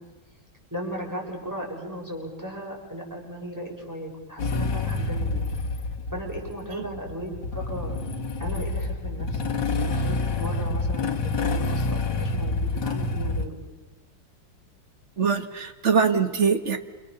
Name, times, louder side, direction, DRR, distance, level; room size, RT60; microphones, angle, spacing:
voice 1, 0.7-5.4 6.1-9.4 9.7-13.6, equal, 10° right, -1 dB, 7.1 m, -36 dB
Motorcycle / Engine starting, 4.4-13.5, left 3 dB, 75° left, 2.4 m, -27 dB
voice 2, 15.2-16.8, right 6 dB, 40° right, 8 dB, 1.7 m, -23 dB
29.0 x 28.0 x 7.0 m, 1.2 s
omnidirectional pair, 1.9 m